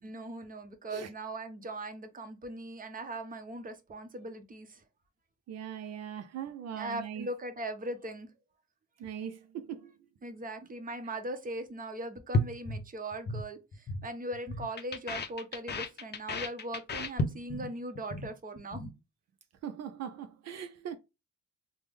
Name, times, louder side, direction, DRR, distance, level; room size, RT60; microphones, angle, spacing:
voice 1, 0.0-4.8 6.8-8.3 10.2-18.9, right 1 dB, 30° right, 0.8 m, -40 dB
voice 2, 5.5-7.3 9.0-9.9 19.6-21.0, right 9 dB, 60° right, 0.4 m, -40 dB
sound 1, 12.3-13.5 13.7-14.1 14.3-17.7 18.0-18.3 18.6-18.9, left 2 dB, 35° left, 0.6 m, -33 dB
3.4 x 2.1 x 3.4 m
cardioid pair, 90°, 30 cm